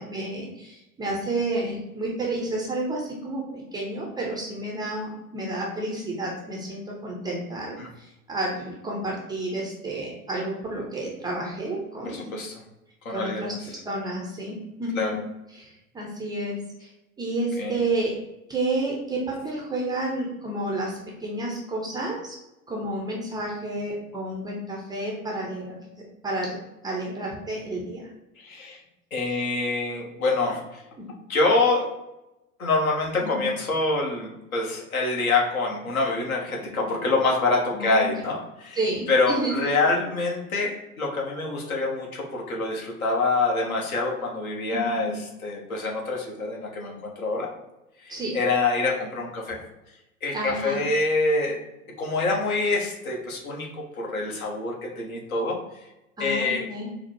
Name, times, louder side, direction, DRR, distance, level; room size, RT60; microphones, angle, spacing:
voice 1, 0.0-12.3 13.1-15.2 15.5-16.9 17.2-18.1 18.5-22.4 22.7-25.8 26.2-26.6 26.8-28.1 31.0-31.1 33.2-33.5 36.6-36.9 37.7-38.1 38.7-39.5 44.7-45.1 48.1-48.3 50.3-50.8 56.2-56.9, right 2 dB, 10° right, -2 dB, 0.4 m, -30 dB
voice 2, 12.0-12.5 13.0-13.5 14.9-15.2 17.6-17.8 28.4-28.8 29.1-30.8 31.3-31.9 32.6-38.8 39.1-45.1 45.4-47.5 48.0-49.6 50.2-51.6 51.9-55.9 56.2-56.7, left 3 dB, 70° left, -1 dB, 1.1 m, -26 dB
4.0 x 2.0 x 4.4 m, 0.95 s
figure-of-eight pair, 85°, 44 cm